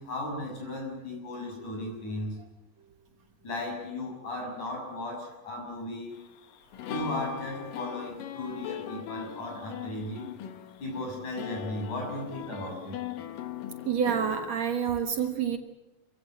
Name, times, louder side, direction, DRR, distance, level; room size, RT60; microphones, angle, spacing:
voice 1, 0.0-2.4 3.4-6.2 6.9-10.3 10.8-13.1, left 1 dB, 60° left, 1 dB, 8.4 m, -36 dB
sound 1, 6.1-14.5, left 10 dB, 90° left, 3.1 m, -40 dB
voice 2, 13.9-15.6, right 7 dB, 60° right, 5 dB, 2.4 m, -28 dB
26.5 x 16.5 x 7.9 m, 1.0 s
omnidirectional pair, 3.8 m